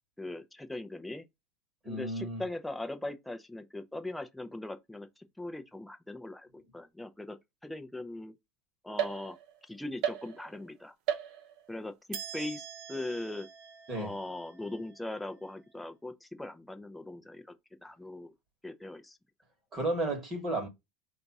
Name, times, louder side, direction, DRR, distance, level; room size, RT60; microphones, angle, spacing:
voice 1, 0.2-1.3 1.9-5.1 5.4-7.4 7.6-8.3 8.8-9.4 9.7-10.9 11.7-11.9 12.3-13.5 14.0-17.4 17.8-18.3 18.6-19.2, left 2 dB, 5° left, 0.5 m, -40 dB
voice 2, 1.8-2.4 13.9-14.1 19.7-20.7, right 2 dB, 20° right, 1.1 m, -33 dB
sound 1, 9.0-9.6 10.0-10.7 11.1-11.7 12.1-15.6, right 9 dB, 45° right, 0.7 m, -39 dB
5.1 x 2.3 x 4.0 m
supercardioid pair, 180°, 0 cm